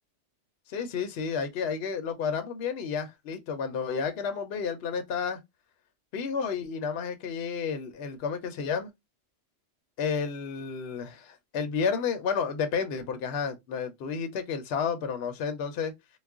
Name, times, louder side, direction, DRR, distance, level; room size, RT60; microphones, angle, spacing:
voice 1, 0.7-5.4 6.1-8.9 10.0-15.9, left 6 dB, 65° left, 0.8 m, -31 dB
2.3 x 2.1 x 3.5 m
omnidirectional pair, 1.2 m